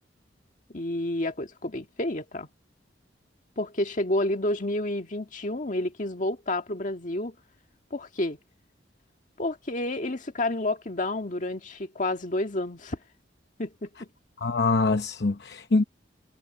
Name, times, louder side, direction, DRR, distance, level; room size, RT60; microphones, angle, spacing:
voice 1, 0.7-2.5 3.6-7.3 7.9-8.4 9.4-13.0 13.6-14.1, left 1 dB, 45° left, 1.8 m, -30 dB
voice 2, 14.4-15.8, left 3 dB, 60° left, 0.8 m, -24 dB
head